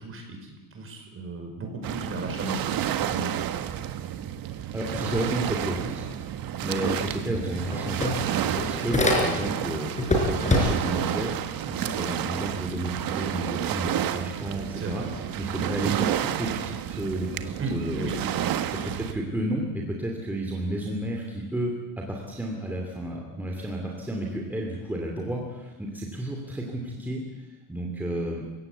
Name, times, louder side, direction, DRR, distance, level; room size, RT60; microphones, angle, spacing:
voice 1, 0.0-3.3 14.8-15.4 17.6-18.5, right 2 dB, 30° right, 4 dB, 5.1 m, -35 dB
Waves surf, 1.8-19.1, right 11 dB, 50° right, 1.4 m, -31 dB
voice 2, 4.4-8.1 8.4-11.3 11.7-15.0 15.4-18.1 18.7-28.4, right 1 dB, 5° right, 0 dB, 2.6 m, -32 dB
sound 1, 7.0-7.1 7.4-9.6 10.0-11.0, left 1 dB, 15° left, 4.5 m, -25 dB
29.0 x 16.5 x 8.1 m, 1.2 s
cardioid pair, 170°, 44 cm